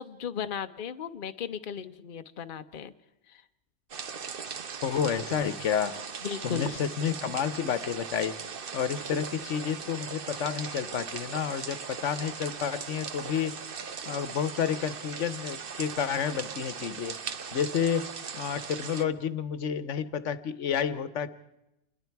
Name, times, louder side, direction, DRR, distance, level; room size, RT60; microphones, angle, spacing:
voice 1, 0.0-2.9 3.3-3.4 6.2-6.7, left 7 dB, 50° left, 9 dB, 1.0 m, -36 dB
sound 1, 3.9-19.0, right 6 dB, 50° right, 1.1 m, -39 dB
voice 2, 4.8-5.9 6.4-8.3 8.7-13.5 14.1-17.2 17.5-18.1 18.3-21.3, left 8 dB, 80° left, 14 dB, 1.2 m, -30 dB
27.5 x 21.5 x 4.6 m, 0.91 s
omnidirectional pair, 1.2 m